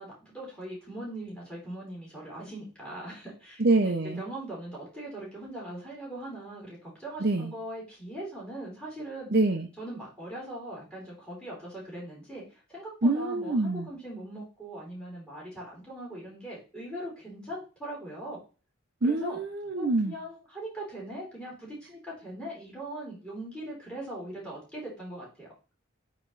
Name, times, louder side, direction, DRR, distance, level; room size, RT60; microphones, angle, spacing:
voice 1, 0.0-3.8 4.2-9.3 9.8-18.4 19.0-19.4 19.8-25.5, right 1 dB, 5° left, -4 dB, 3.5 m, -40 dB
voice 2, 3.6-4.2 7.2-7.5 9.3-9.7 13.0-13.9 19.0-20.1, right 2 dB, 50° right, 4 dB, 0.7 m, -25 dB
8.4 x 3.1 x 4.0 m, 0.34 s
head